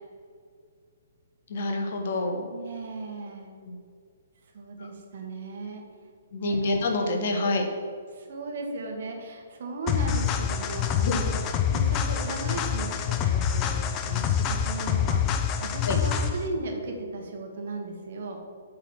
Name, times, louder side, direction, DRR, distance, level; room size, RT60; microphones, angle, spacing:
voice 1, 1.5-2.4 3.6-3.8 6.3-7.7 11.0-11.2 15.8-15.9, left 2 dB, 50° left, 3 dB, 1.1 m, -27 dB
voice 2, 2.5-3.5 4.5-5.8 6.4-6.8 8.1-11.4 11.7-18.4, right 3 dB, 50° right, 2 dB, 1.3 m, -36 dB
sound 1, 9.9-16.5, left 8 dB, 25° left, 0.5 m, -26 dB
7.9 x 4.0 x 5.9 m, 2.1 s
figure-of-eight pair, 125°, 0 cm